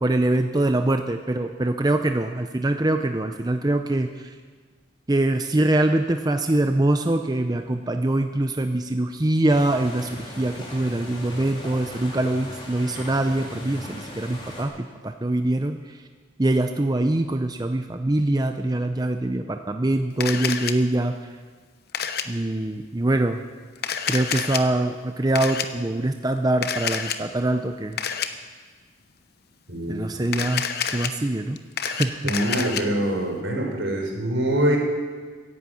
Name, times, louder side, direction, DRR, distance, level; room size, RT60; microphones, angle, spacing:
voice 1, 0.0-4.3 5.1-14.7 15.0-15.8 16.4-21.2 22.3-23.4 24.1-28.0 29.9-30.7 30.9-31.6 31.9-32.3, right 1 dB, 20° right, 6 dB, 0.6 m, -23 dB
sound 1, 9.5-14.6, left 1 dB, 25° left, 3.3 m, -39 dB
Camera, 20.2-20.7 21.9-22.2 23.8-24.6 25.4-25.7 26.6-27.2 28.0-28.3 30.3-31.1 31.6-32.8, left 8 dB, 55° left, 0.9 m, -27 dB
voice 2, 29.7-30.3 32.2-34.8, right 1 dB, 75° right, 2 dB, 3.8 m, -24 dB
15.0 x 11.0 x 8.6 m, 1.5 s
head